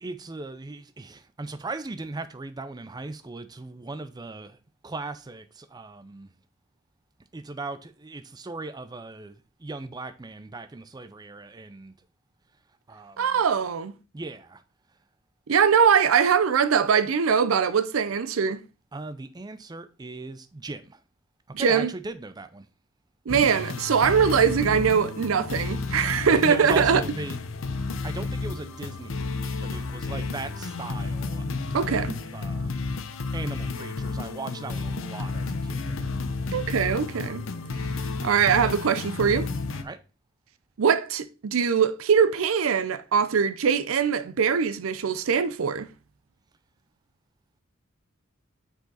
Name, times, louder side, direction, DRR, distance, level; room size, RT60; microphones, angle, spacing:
voice 1, 0.0-4.6 4.8-6.3 7.3-9.3 9.6-12.0 12.9-13.4 14.1-14.6 18.9-21.0 21.6-22.7 26.4-27.4 28.0-31.4 31.8-32.7 33.3-36.0 39.7-40.0, right 3 dB, 20° right, 0.4 m, -38 dB
voice 2, 13.2-13.9 15.5-18.6 21.5-21.9 23.3-27.0 31.7-32.2 36.5-37.4 38.2-39.5 40.8-45.9, right 6 dB, 80° right, 0.5 m, -22 dB
sound 1, 23.3-39.8, left 3 dB, 70° left, 0.7 m, -31 dB
6.6 x 4.9 x 3.9 m
head